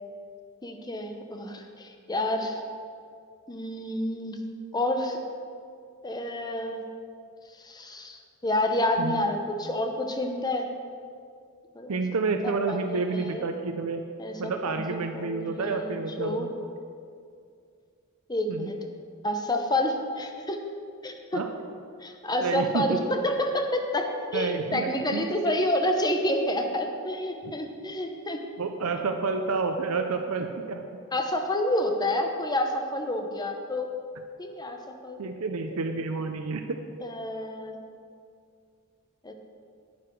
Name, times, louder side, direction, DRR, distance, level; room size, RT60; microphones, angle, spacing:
voice 1, 0.6-2.6 3.5-4.4 4.7-5.2 6.0-6.8 7.6-10.7 11.7-12.0 12.7-13.5 14.2-16.5 18.3-18.8 19.2-20.6 21.0-21.4 22.0-28.4 31.1-33.9 34.4-35.2 37.0-37.8 39.2-39.3, left 1 dB, 20° left, 4 dB, 0.8 m, -29 dB
voice 2, 11.9-14.0 14.4-16.5 18.5-18.7 21.3-21.5 22.4-23.0 24.3-25.5 27.4-27.5 28.6-30.8 35.2-36.8, right 4 dB, 80° right, 6 dB, 0.6 m, -29 dB
9.5 x 9.5 x 4.6 m, 2.3 s
head